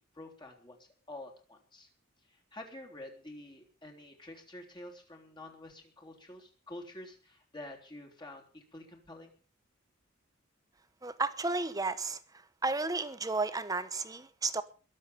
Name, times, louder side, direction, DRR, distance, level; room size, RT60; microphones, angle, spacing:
voice 1, 0.0-1.9 2.3-9.3, left 1 dB, 20° left, 2 dB, 3.5 m, -48 dB
voice 2, 11.0-12.2 12.6-14.6, right 3 dB, 15° right, 13 dB, 1.1 m, -32 dB
22.0 x 7.6 x 6.9 m, 0.39 s
head